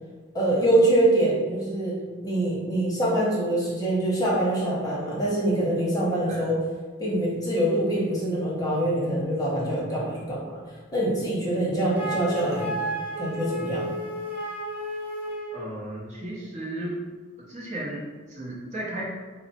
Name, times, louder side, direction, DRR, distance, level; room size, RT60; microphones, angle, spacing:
voice 1, 0.3-1.9 2.2-6.6 7.0-10.6 10.9-12.7 13.2-13.9, right 1 dB, 20° left, -5 dB, 0.9 m, -24 dB
Wind instrument woodwind instrument, 12.0-15.7, right 1 dB, 10° right, 0.6 m, -32 dB
voice 2, 15.5-17.0 17.4-19.0, right 1 dB, 35° right, -5 dB, 0.9 m, -35 dB
4.1 x 2.0 x 4.2 m, 1.4 s
head